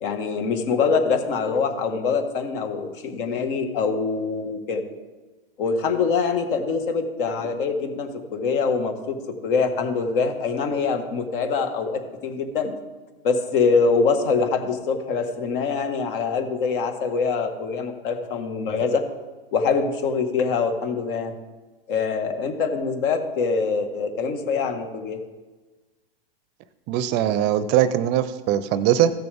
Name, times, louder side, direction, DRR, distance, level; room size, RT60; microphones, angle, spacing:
voice 1, 0.0-4.8 5.6-9.2 9.4-12.7 13.2-19.0 19.5-21.3 21.9-25.2, left 5 dB, 60° left, 6 dB, 1.7 m, -24 dB
voice 2, 26.9-29.1, right 11 dB, 35° right, 14 dB, 0.5 m, -21 dB
16.0 x 6.8 x 3.5 m, 1.2 s
hypercardioid pair, 115°, 30 cm